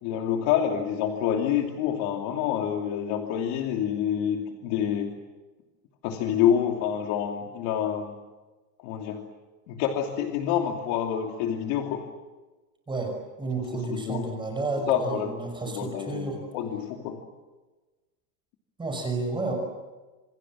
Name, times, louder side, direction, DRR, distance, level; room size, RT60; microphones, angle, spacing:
voice 1, 0.0-5.1 6.0-8.2 8.8-9.2 9.7-12.0 13.7-14.3 14.9-15.4 15.6-17.2, left 9 dB, 55° left, 3 dB, 2.9 m, -27 dB
voice 2, 13.4-16.4 18.8-19.5, right 3 dB, 10° right, 3 dB, 5.8 m, -31 dB
28.0 x 27.5 x 7.5 m, 1.2 s
cardioid pair, 175°, 46 cm